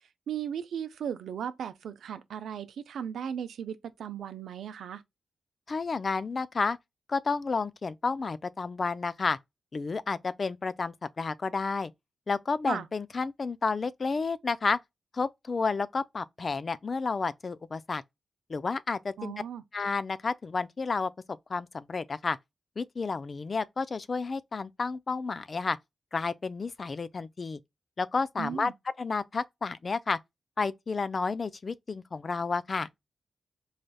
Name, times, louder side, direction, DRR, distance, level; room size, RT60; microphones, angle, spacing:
voice 1, 0.3-5.0 12.7-12.9 19.2-19.6 28.4-28.7, right 8 dB, 85° right, 0.5 m, -36 dB
voice 2, 5.7-6.8 7.1-9.4 9.7-11.9 12.3-14.8 15.1-18.0 18.5-19.3 19.7-21.1 21.5-22.4 22.8-25.8 26.1-27.6 28.0-28.7 29.0-30.2 30.6-32.9, left 4 dB, 45° left, 0.4 m, -31 dB
4.0 x 3.2 x 2.2 m
cardioid pair, 60°, 0 cm